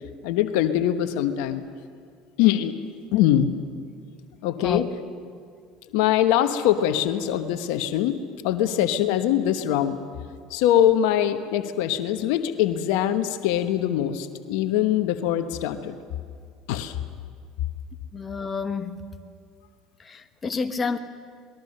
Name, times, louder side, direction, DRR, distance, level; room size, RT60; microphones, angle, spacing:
voice 1, 0.2-1.6 2.4-2.7 3.1-3.5 4.4-4.9 5.9-8.2 8.4-10.0 10.5-16.0 16.7-17.0, left 11 dB, 75° left, 1.1 m, -23 dB
voice 2, 18.1-19.0 20.0-21.0, left 5 dB, 30° left, 1.3 m, -29 dB
26.5 x 20.5 x 6.7 m
supercardioid pair, 85°, 0 cm